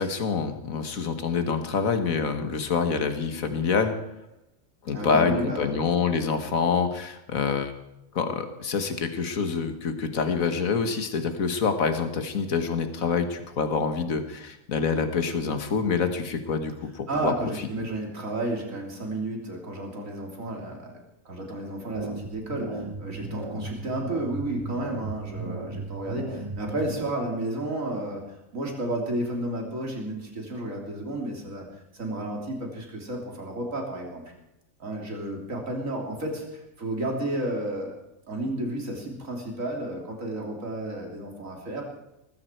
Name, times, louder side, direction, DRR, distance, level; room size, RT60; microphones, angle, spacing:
voice 1, 0.0-4.0 4.8-7.7 8.1-17.3, left 5 dB, 85° left, 7 dB, 1.9 m, -26 dB
voice 2, 4.9-5.8 17.1-21.0 21.3-28.2 28.5-31.7 31.9-34.2 34.8-37.9 38.3-41.8, right 1 dB, 75° right, 1 dB, 3.5 m, -32 dB
sound 1, 21.9-27.1, right 3 dB, 25° right, 0.9 m, -36 dB
20.0 x 15.0 x 4.6 m, 0.89 s
omnidirectional pair, 1.4 m